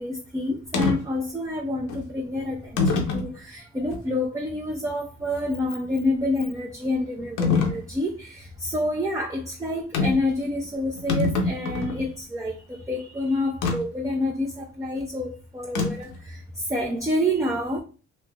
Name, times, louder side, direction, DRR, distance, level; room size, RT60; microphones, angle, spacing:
voice 1, 0.0-17.8, left 1 dB, 10° right, 0.5 m, -28 dB
sound 1, 0.7-1.0 1.9-2.0 2.8-3.3 3.9-4.0 7.4-7.8 9.9-10.3 10.6-10.7 10.9-12.0 13.6-13.8 15.7-16.1, left 4 dB, 80° left, 0.7 m, -24 dB
3.2 x 2.8 x 2.3 m
cardioid pair, 90°, 30 cm